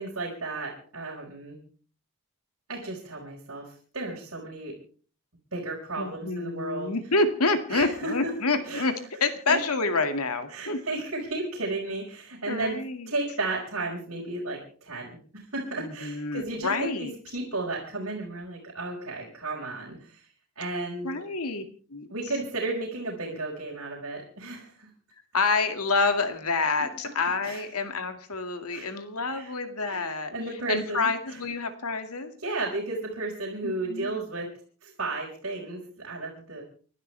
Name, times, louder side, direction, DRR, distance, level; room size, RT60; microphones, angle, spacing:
voice 1, 0.0-1.6 2.7-4.8 5.5-6.9 7.7-8.3 8.6-8.8 9.5-9.6 10.5-20.2 20.6-21.1 22.1-24.9 26.8-26.9 27.4-27.6 28.7-29.0 29.3-29.5 29.8-30.1 30.3-31.4 32.4-36.6, right 2 dB, 65° right, -4 dB, 5.2 m, -34 dB
voice 2, 6.0-8.9 9.2-10.8 12.5-13.1 15.8-17.1 21.0-21.6 21.9-22.1 25.3-30.3 30.7-32.3 33.6-34.2, left 3 dB, 85° left, 7 dB, 2.3 m, -28 dB
29.5 x 12.0 x 3.4 m, 0.41 s
head